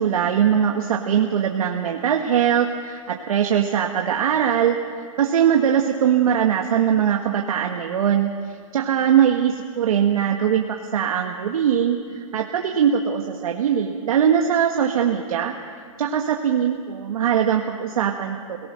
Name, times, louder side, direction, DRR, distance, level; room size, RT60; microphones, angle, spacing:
voice 1, 0.0-8.3 8.7-15.5 16.0-18.4, right 8 dB, 75° right, 2 dB, 1.5 m, -21 dB
26.5 x 18.5 x 6.4 m, 2.2 s
hypercardioid pair, 150°, 18 cm